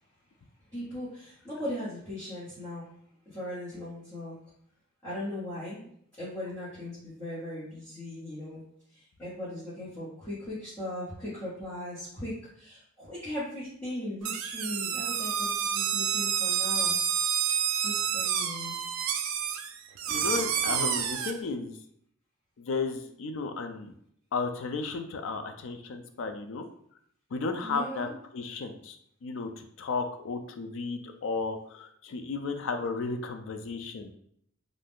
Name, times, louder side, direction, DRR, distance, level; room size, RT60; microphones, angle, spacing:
voice 1, 0.7-2.9 3.3-4.3 5.0-5.9 6.2-8.6 8.9-16.9 17.7-18.7 27.6-28.1, left 1 dB, 15° left, -12 dB, 0.9 m, -38 dB
sound 1, 14.2-21.3, right 8 dB, 70° right, 0.3 m, -29 dB
voice 2, 20.1-21.8 22.6-23.9 24.3-26.6 27.3-29.0 29.2-34.1, left 4 dB, 60° left, 7 dB, 0.4 m, -34 dB
2.5 x 2.3 x 3.5 m, 0.69 s
head